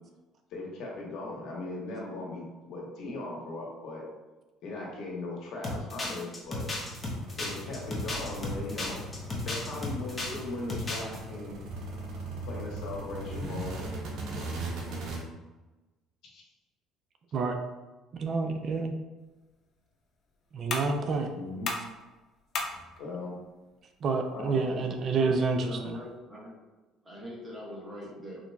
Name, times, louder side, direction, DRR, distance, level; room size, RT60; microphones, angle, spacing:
voice 1, 0.5-4.0 4.6-6.7 7.4-9.0 9.4-11.6 12.5-13.8 16.3-16.4 21.3-21.7 23.0-23.4 24.3-24.9, left 2 dB, 70° left, -2 dB, 1.1 m, -38 dB
sound 1, 5.6-10.4 10.7-11.2, left 2 dB, 25° left, 0.8 m, -34 dB
sound 2, 6.4-15.2, right 1 dB, 65° right, 0.8 m, -39 dB
voice 2, 18.1-18.9 20.5-21.3 24.0-25.8, right 4 dB, 50° right, 4 dB, 0.4 m, -28 dB
sound 3, 19.2-26.2, left 3 dB, 50° left, 0.5 m, -41 dB
voice 3, 24.9-26.5 27.0-28.4, equal, 15° right, -4 dB, 1.2 m, -42 dB
3.7 x 2.8 x 2.3 m, 1.1 s
cardioid pair, 105°, 0 cm